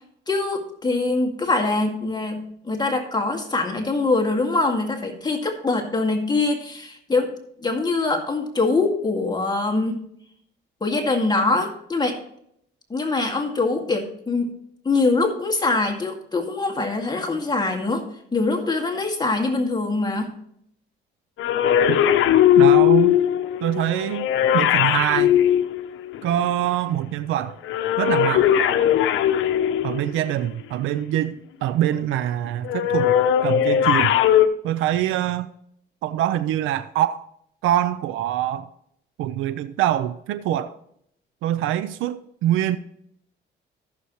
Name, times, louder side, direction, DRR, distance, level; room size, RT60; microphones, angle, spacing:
voice 1, 0.3-7.3 7.6-10.0 10.8-12.2 12.9-14.5 14.9-18.0 18.3-20.3, left 3 dB, 20° left, 2.0 m, -23 dB
sound 1, 21.4-26.4 27.6-30.2 32.6-34.5, left 11 dB, 85° left, 0.8 m, -19 dB
voice 2, 22.6-23.2 23.6-24.3 24.5-25.4 26.2-27.6 28.0-28.5 29.8-33.1 33.4-34.1 34.6-35.5 36.0-37.3 37.6-38.7 39.2-40.7 41.4-42.8, right 12 dB, 90° right, 0.5 m, -24 dB
14.5 x 6.9 x 3.0 m
cardioid pair, 90°, 20 cm